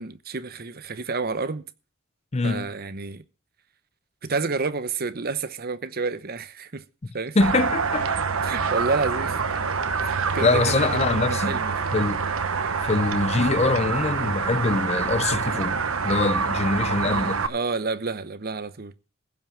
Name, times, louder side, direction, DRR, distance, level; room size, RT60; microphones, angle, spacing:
voice 1, 0.0-1.6 2.4-3.2 4.2-6.8 7.1-7.4 8.4-9.4 10.0-11.8 17.0-18.9, right 4 dB, 45° right, 0.9 m, -30 dB
voice 2, 2.3-2.7 7.4-8.1 10.4-11.6 11.9-12.2 12.8-15.8 16.0-17.4, left 3 dB, 30° left, 0.6 m, -23 dB
sound 1, 7.4-17.5, right 5 dB, 80° right, 1.1 m, -26 dB
16.0 x 5.9 x 7.3 m
head